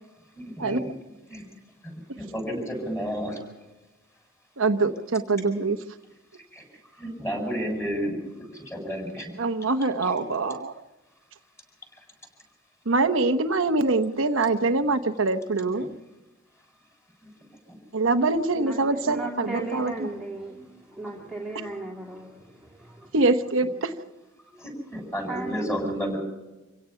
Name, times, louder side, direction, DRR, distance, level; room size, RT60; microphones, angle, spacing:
voice 1, 0.4-0.9 1.3-1.4 1.8-1.9 2.2-3.4 6.3-6.6 6.9-9.3 10.0-10.2 15.8-16.0 17.7-17.8 21.0-21.1 24.6-26.2, equal, 15° left, 2 dB, 7.5 m, -32 dB
voice 2, 4.6-5.8 9.4-10.8 12.9-15.9 17.9-20.1 23.1-23.9, right 3 dB, 70° right, 6 dB, 1.0 m, -24 dB
voice 3, 18.5-23.1 24.5-24.6 25.3-25.6, right 2 dB, 5° right, -4 dB, 2.6 m, -37 dB
27.0 x 17.0 x 5.7 m, 1.1 s
head